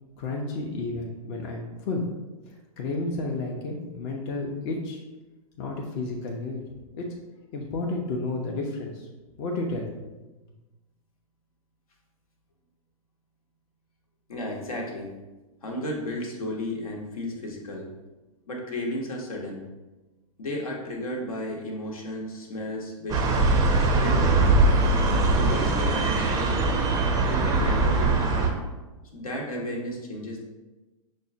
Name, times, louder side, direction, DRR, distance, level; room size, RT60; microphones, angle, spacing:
voice 1, 0.2-2.1 2.5-5.0 5.6-6.6 6.9-7.1 7.5-9.1 9.4-9.9, left 2 dB, 45° left, 0 dB, 0.6 m, -31 dB
voice 2, 14.3-15.1 15.6-17.9 18.5-19.6 20.4-24.6 25.4-26.8 27.3-28.5 29.1-30.4, left 1 dB, 80° left, 0 dB, 1.0 m, -33 dB
sound 1, 23.1-28.5, right 3 dB, 20° right, 0.5 m, -22 dB
6.1 x 2.1 x 2.7 m, 1.1 s
hypercardioid pair, 110°, 18 cm